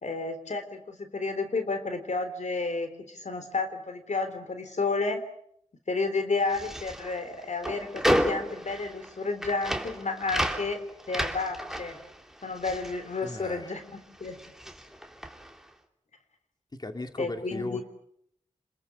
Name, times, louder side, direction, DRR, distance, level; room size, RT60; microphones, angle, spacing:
voice 1, 0.0-5.2 5.9-12.0 12.4-13.8 14.2-14.4 17.2-17.8, left 3 dB, 70° left, 8 dB, 3.7 m, -31 dB
sound 1, 6.4-13.9 14.1-15.6, equal, 5° right, 3.0 m, -32 dB
voice 2, 13.2-13.7 16.8-17.8, left 2 dB, 35° left, 6 dB, 2.3 m, -36 dB
30.0 x 21.5 x 6.9 m, 0.69 s
wide cardioid pair, 55°, 13 cm